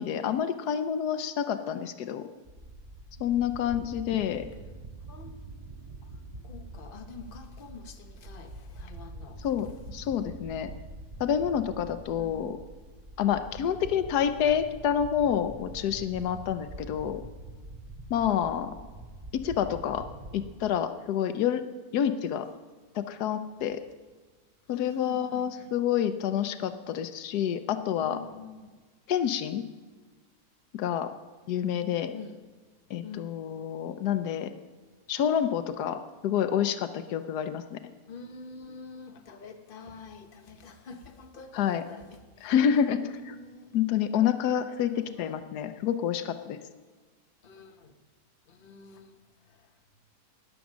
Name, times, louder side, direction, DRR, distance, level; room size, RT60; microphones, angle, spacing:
voice 1, 0.0-2.2 3.2-4.5 9.4-10.7 11.2-12.6 13.2-17.2 18.1-18.7 19.3-20.0 20.3-21.6 21.9-22.5 22.9-23.8 24.7-28.2 29.1-29.6 30.7-31.1 31.5-32.1 32.9-34.5 35.1-37.8 41.5-41.8 42.4-43.0 43.7-46.6, left 9 dB, 85° left, 10 dB, 1.2 m, -28 dB
sound 1, 2.5-20.6, right 1 dB, 25° right, 0.8 m, -45 dB
voice 2, 3.2-3.9 5.1-5.4 6.0-9.5 12.2-12.5 18.1-18.6 24.7-25.7 27.9-28.7 32.1-32.4 33.0-33.4 38.1-42.5 43.0-44.0 44.9-45.4 47.4-47.9 48.5-50.0, left 4 dB, 40° left, 5 dB, 1.2 m, -47 dB
19.0 x 7.1 x 6.2 m, 1.4 s
omnidirectional pair, 1.6 m